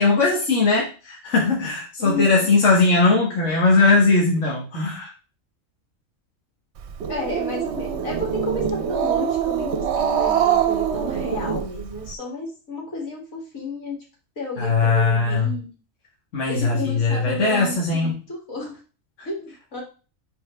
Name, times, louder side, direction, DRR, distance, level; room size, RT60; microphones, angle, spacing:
voice 1, 0.0-5.1 14.6-15.5 16.3-18.1, left 3 dB, 60° left, -3 dB, 1.9 m, -19 dB
voice 2, 2.0-2.5 4.3-4.5 7.1-14.0 14.4-15.8 16.5-18.8 19.2-19.8, left 2 dB, 80° left, -2 dB, 2.9 m, -32 dB
Growling, 6.8-12.1, right 8 dB, 60° right, 0.9 m, -24 dB
10.5 x 4.3 x 3.3 m, 0.34 s
omnidirectional pair, 1.4 m